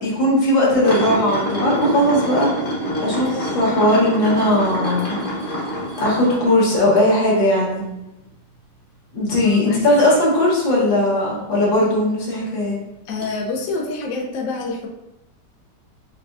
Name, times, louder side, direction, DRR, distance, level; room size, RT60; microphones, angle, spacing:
voice 1, 0.0-2.5 3.0-5.2 6.0-7.8 9.1-12.8, left 1 dB, 85° left, -5 dB, 1.9 m, -18 dB
sound 1, 0.8-7.3 7.8-8.0 11.4-11.5 13.2-13.3, equal, 35° left, 1.0 m, -26 dB
voice 2, 9.4-10.0 13.1-14.9, left 3 dB, 65° left, 0 dB, 0.8 m, -26 dB
5.6 x 2.3 x 2.4 m, 0.91 s
omnidirectional pair, 2.0 m